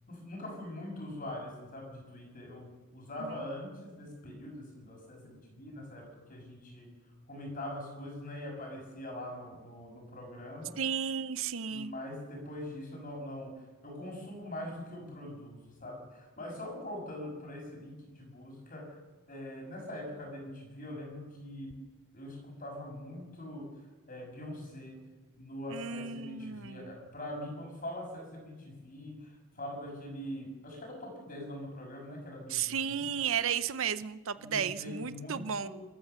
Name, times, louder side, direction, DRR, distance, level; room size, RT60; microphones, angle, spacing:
voice 1, 0.1-6.9 7.3-10.8 11.7-19.0 19.3-21.8 22.1-23.7 24.1-25.0 25.4-33.1 34.4-35.7, left 1 dB, 40° left, 1 dB, 6.3 m, -43 dB
voice 2, 10.8-11.9 25.7-26.9 32.5-35.7, right 7 dB, 60° right, 14 dB, 0.6 m, -34 dB
28.0 x 14.0 x 6.9 m, 1.2 s
head